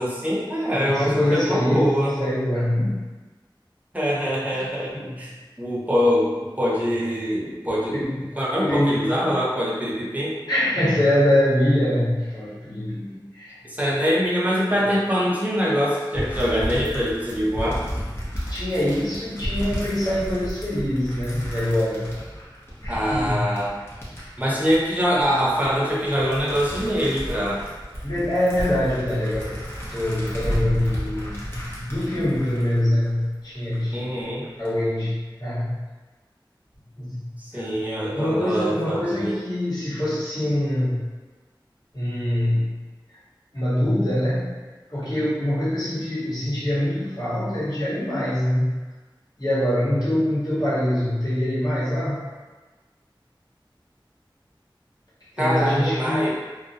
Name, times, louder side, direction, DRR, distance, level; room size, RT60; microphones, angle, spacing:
voice 1, 0.0-2.2 3.9-5.3 5.6-8.0 8.4-10.4 13.7-17.8 22.9-23.7 24.4-27.6 33.9-34.4 37.4-39.4 55.4-56.3, equal, 20° right, -6 dB, 0.7 m, -24 dB
voice 2, 0.7-3.1 4.5-4.7 4.9-5.1 7.9-8.2 8.6-9.4 10.5-13.6 18.3-22.1 22.8-23.4 28.0-29.6 29.9-34.1 34.6-35.8 37.0-37.3 37.5-37.7 38.1-41.0 41.9-42.8 43.5-44.5 44.9-48.8 49.4-52.2 55.4-56.3, left 1 dB, 50° left, -11 dB, 1.1 m, -24 dB
sound 1, 16.1-33.8 34.2-34.7, equal, 30° left, 0.7 m, -33 dB
2.3 x 2.0 x 2.7 m, 1.3 s
wide cardioid pair, 45°, 9 cm